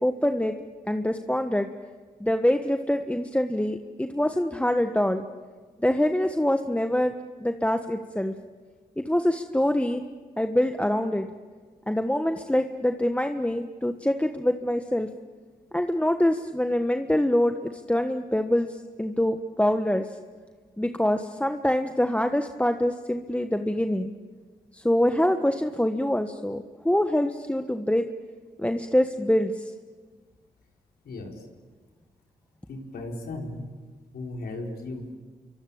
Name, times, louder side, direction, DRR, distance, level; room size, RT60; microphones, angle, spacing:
voice 1, 0.0-0.6 0.9-1.7 2.2-5.2 5.8-8.3 9.0-10.0 10.4-11.3 11.9-15.1 15.7-20.1 20.8-24.1 24.7-28.1 28.6-29.6, left 1 dB, 10° left, 7 dB, 1.4 m, -25 dB
voice 2, 31.0-31.4 32.7-33.6 34.1-35.2, left 2 dB, 75° left, 1 dB, 4.8 m, -36 dB
27.5 x 24.0 x 8.8 m, 1.5 s
supercardioid pair, 50°, 16 cm